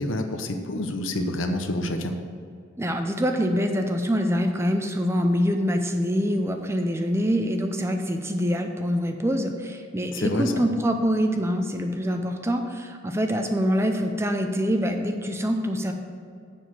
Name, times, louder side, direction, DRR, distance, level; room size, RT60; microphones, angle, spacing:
voice 1, 0.0-2.1 10.1-10.6, left 1 dB, 75° left, 5 dB, 0.9 m, -28 dB
voice 2, 2.8-15.9, equal, 15° right, 5 dB, 0.5 m, -25 dB
7.1 x 6.3 x 7.4 m, 2.3 s
head